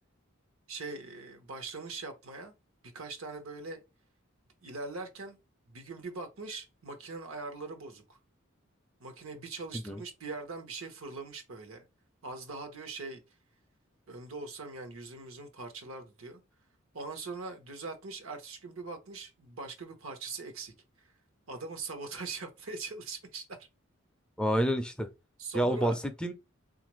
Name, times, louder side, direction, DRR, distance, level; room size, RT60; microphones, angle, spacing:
voice 1, 0.7-2.5 2.9-3.8 4.6-5.4 5.7-8.2 9.0-11.8 12.2-13.2 14.1-16.4 16.9-21.1 21.5-23.7 25.4-26.0, right 3 dB, 85° right, 0.9 m, -41 dB
voice 2, 24.4-25.1 25.5-26.3, equal, 5° left, 0.3 m, -28 dB
3.9 x 2.4 x 3.0 m
head